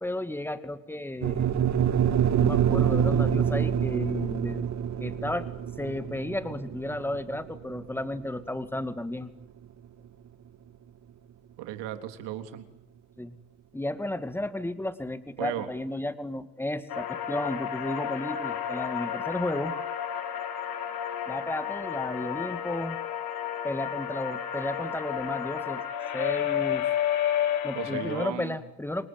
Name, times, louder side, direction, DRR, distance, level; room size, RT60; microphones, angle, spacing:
voice 1, 0.0-1.5 2.4-4.7 5.0-5.5 5.8-9.3 13.2-13.3 13.7-19.7 21.3-23.0 23.6-25.8 26.1-26.9 27.6-29.1, left 1 dB, 5° left, 10 dB, 2.3 m, -33 dB
sound 1, 1.2-9.4, right 9 dB, 35° right, 2.0 m, -26 dB
voice 2, 11.6-12.7 15.4-15.7 27.8-28.6, right 12 dB, 60° right, 8 dB, 3.6 m, -35 dB
sound 2, 16.9-28.3, left 9 dB, 45° left, 4.4 m, -31 dB
28.5 x 19.5 x 9.0 m, 0.86 s
supercardioid pair, 115°, 48 cm